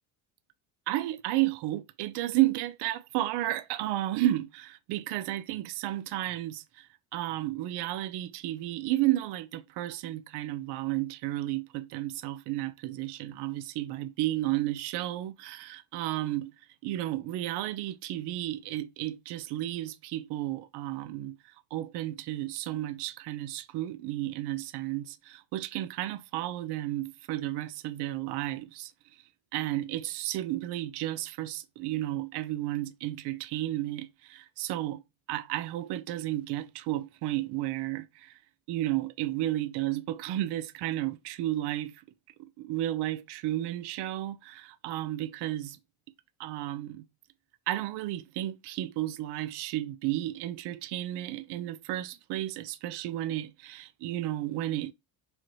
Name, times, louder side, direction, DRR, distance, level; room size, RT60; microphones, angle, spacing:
voice 1, 0.9-16.5 16.8-28.9 29.5-35.0 35.3-38.4 38.7-42.0 42.4-45.8 46.4-47.0 47.7-54.9, right 15 dB, 65° right, 0.6 m, -32 dB
4.8 x 2.8 x 3.0 m
cardioid pair, 155°, 44 cm